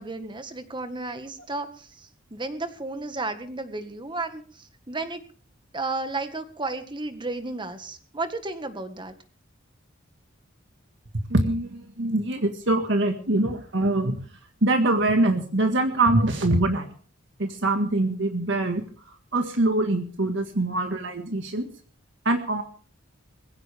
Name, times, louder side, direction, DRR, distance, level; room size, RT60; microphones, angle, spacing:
voice 1, 0.0-5.2 5.7-9.1, right 3 dB, 25° right, 9 dB, 1.7 m, -33 dB
voice 2, 11.3-14.2 14.6-16.9 17.4-21.7 22.3-22.6, right 2 dB, 65° right, 6 dB, 1.9 m, -24 dB
21.0 x 17.0 x 3.6 m, 0.41 s
head